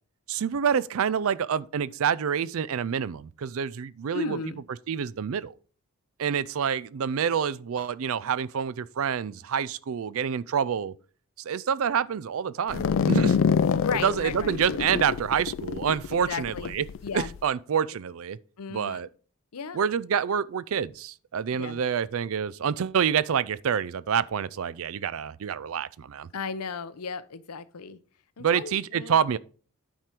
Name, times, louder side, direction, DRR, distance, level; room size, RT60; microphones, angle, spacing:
voice 1, 0.3-4.4 4.9-5.5 6.2-10.9 11.5-13.4 14.0-16.8 17.1-18.4 18.7-19.1 19.7-26.3 28.4-29.4, right 7 dB, 65° right, 0.4 m, -27 dB
voice 2, 4.1-4.6 13.8-14.5 16.1-16.8 17.0-17.3 18.6-19.0 19.5-19.8 21.6-21.8 26.3-28.0 28.4-29.2, left 5 dB, 85° left, 0.7 m, -35 dB
sound 1, 12.7-17.4, left 6 dB, 60° left, 0.3 m, -26 dB
9.2 x 4.5 x 4.9 m
head